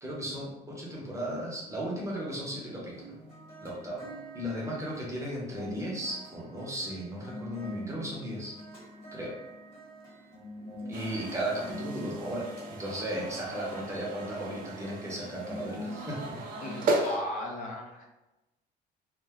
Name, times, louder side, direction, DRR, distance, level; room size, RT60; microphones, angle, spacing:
voice 1, 0.0-3.1 3.6-4.0 4.3-8.5 9.1-9.3 10.9-16.4 16.9-17.2, right 1 dB, 15° right, -4 dB, 0.8 m, -36 dB
sound 1, 2.9-16.8, equal, 35° left, 1.2 m, -45 dB
sound 2, 10.9-17.2, right 2 dB, 55° right, 0.5 m, -36 dB
voice 2, 16.6-18.0, left 1 dB, 50° left, -1 dB, 0.5 m, -36 dB
2.2 x 2.1 x 3.4 m, 1.0 s
cardioid pair, 110°, 17 cm